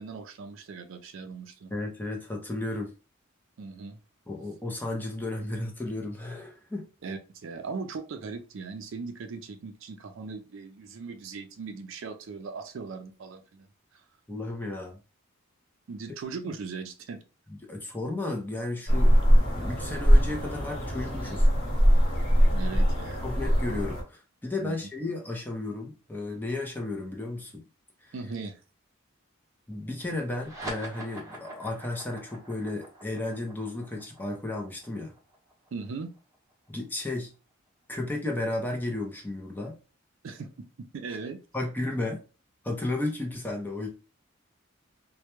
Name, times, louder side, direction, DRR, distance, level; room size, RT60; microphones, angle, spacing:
voice 1, 0.0-1.7 3.6-4.0 7.0-13.7 13.9-14.0 15.9-17.2 22.5-23.3 24.6-24.9 28.1-28.6 35.7-36.1 40.2-41.4, right 4 dB, 70° right, 0.4 m, -39 dB
voice 2, 1.7-2.9 4.3-6.9 14.3-15.0 17.6-21.5 23.2-27.6 28.0-28.1 29.7-35.1 36.7-37.3 37.9-39.8 41.5-42.2 42.6-43.9, left 2 dB, 10° left, 0.5 m, -33 dB
sound 1, 18.9-24.0, equal, 45° left, 0.9 m, -22 dB
sound 2, 30.3-37.2, right 1 dB, 15° right, 0.9 m, -44 dB
2.2 x 2.1 x 2.9 m
head